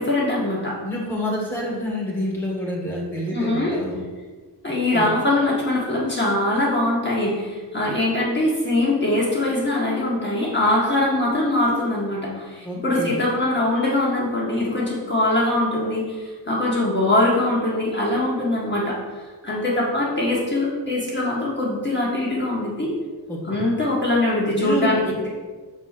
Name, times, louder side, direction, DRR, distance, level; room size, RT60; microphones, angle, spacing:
voice 1, 0.0-0.7 3.3-3.8 4.6-22.9 23.5-25.3, left 1 dB, 25° left, -6 dB, 1.6 m, -22 dB
voice 2, 0.8-4.0 4.9-5.1 12.6-13.1 23.3-23.6 24.5-25.3, left 1 dB, 5° left, -4 dB, 1.8 m, -28 dB
6.7 x 4.5 x 6.6 m, 1.4 s
wide cardioid pair, 165°, 41 cm